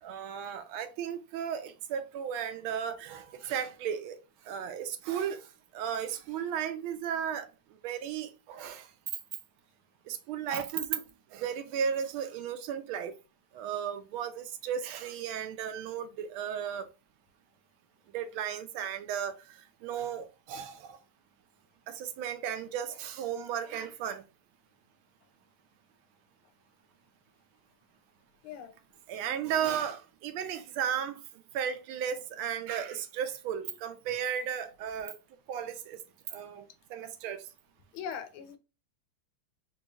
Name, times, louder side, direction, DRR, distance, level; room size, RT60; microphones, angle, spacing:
voice 1, 0.0-4.2 4.5-5.5 5.7-7.5 7.8-8.9 10.1-11.0 11.3-13.1 13.5-16.9 18.1-21.0 21.9-24.2 29.1-31.2 31.5-35.2 35.5-36.0 36.3-37.4, right 8 dB, 85° right, 1.4 m, -35 dB
voice 2, 37.9-38.6, left 8 dB, 90° left, 1.5 m, -40 dB
4.0 x 3.0 x 2.3 m
omnidirectional pair, 2.2 m